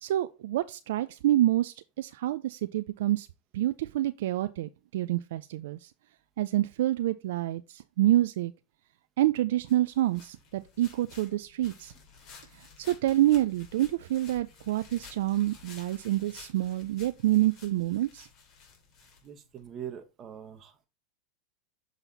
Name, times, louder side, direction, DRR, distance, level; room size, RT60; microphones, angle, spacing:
voice 1, 0.0-3.3 3.5-5.9 6.4-8.5 9.2-11.9 12.6-18.3, right 14 dB, 75° right, 0.3 m, -27 dB
sound 1, 9.7-19.7, left 5 dB, 45° left, 2.8 m, -53 dB
voice 2, 19.2-20.9, right 9 dB, 35° right, 1.1 m, -43 dB
7.2 x 4.0 x 4.0 m
hypercardioid pair, 100°, 0 cm